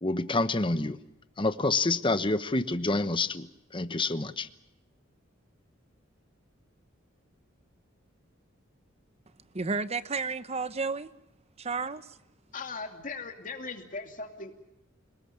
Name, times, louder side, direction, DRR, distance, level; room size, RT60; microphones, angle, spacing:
voice 1, 0.0-1.0 1.4-3.5 3.7-4.5, left 2 dB, 25° left, 1.1 m, -27 dB
voice 2, 9.5-11.1 11.6-12.2, right 4 dB, 30° right, 0.9 m, -32 dB
voice 3, 12.5-14.5, left 4 dB, 40° left, 2.6 m, -39 dB
29.0 x 19.5 x 7.2 m
head